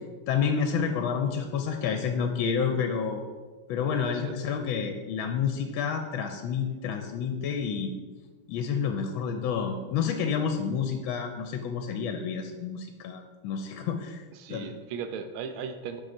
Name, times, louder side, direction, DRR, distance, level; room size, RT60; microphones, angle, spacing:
voice 1, 0.3-3.2 3.7-7.9 8.5-14.2 14.5-14.7, left 6 dB, 80° left, 6 dB, 1.3 m, -29 dB
voice 2, 14.3-16.0, right 6 dB, 90° right, 7 dB, 1.4 m, -37 dB
6.3 x 4.9 x 4.4 m, 1.4 s
omnidirectional pair, 2.2 m